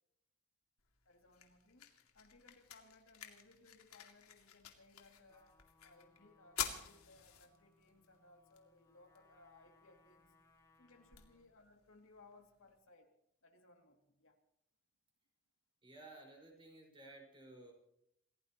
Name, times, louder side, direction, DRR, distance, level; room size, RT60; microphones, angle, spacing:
sound 1, 0.8-12.8, left 9 dB, 85° left, 2.4 m, -51 dB
voice 1, 1.0-10.4 10.8-13.1 13.4-14.4, left 2 dB, 65° left, 3 dB, 2.6 m, -64 dB
Trumpet, 5.3-11.6, left 3 dB, 15° left, 2.8 m, -71 dB
voice 2, 15.8-17.7, right 2 dB, 25° right, 0 dB, 5.1 m, -56 dB
28.0 x 17.0 x 3.0 m, 0.79 s
head